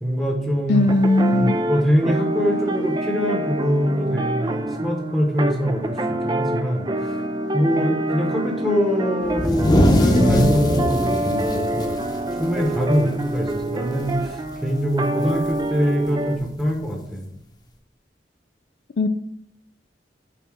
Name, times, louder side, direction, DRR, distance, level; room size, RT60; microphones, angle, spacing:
voice 1, 0.0-0.9 1.3-7.1 7.5-11.9 12.4-17.2, equal, ahead, 1 dB, 1.0 m, -24 dB
voice 2, 0.7-1.6 19.0-19.1, left 2 dB, 70° left, 10 dB, 0.4 m, -18 dB
sound 1, 0.7-16.4, right 1 dB, 25° right, 0.4 m, -26 dB
sound 2, 9.3-13.0 13.3-13.5 13.9-14.3 15.4-15.5 16.6-16.7, equal, 25° left, 0.9 m, -20 dB
5.8 x 4.0 x 6.1 m, 0.75 s
head